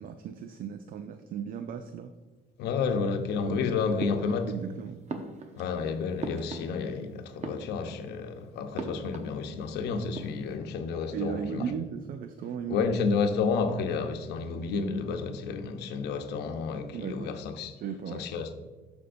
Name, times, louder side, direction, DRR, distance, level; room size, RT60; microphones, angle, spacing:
voice 1, 0.0-2.1 4.5-5.0 11.1-12.9 16.9-17.3 17.8-18.5, right 7 dB, 55° right, 0.5 m, -36 dB
voice 2, 2.6-4.5 5.6-11.7 12.7-17.8 18.1-18.5, left 5 dB, 80° left, 0.9 m, -30 dB
sound 1, 4.0-4.7 5.1-7.0 7.3-8.2 8.8-9.7 10.0-10.6, right 3 dB, 40° right, 0.9 m, -40 dB
12.5 x 5.3 x 2.6 m
cardioid pair, 110°, 17 cm